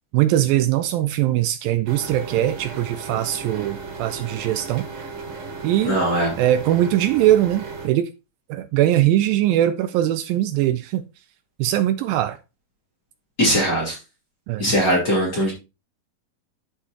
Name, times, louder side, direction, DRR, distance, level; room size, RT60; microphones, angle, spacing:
voice 1, 0.1-4.9 5.6-6.0 6.4-8.1 8.5-11.0 11.6-12.4 14.5-14.7, right 13 dB, 80° right, 2.2 m, -21 dB
sound 1, 1.9-7.9, right 4 dB, 50° right, 2.8 m, -35 dB
voice 2, 5.8-6.3 13.4-13.9 14.6-15.5, equal, 30° left, 2.2 m, -20 dB
12.5 x 4.4 x 2.8 m
omnidirectional pair, 4.3 m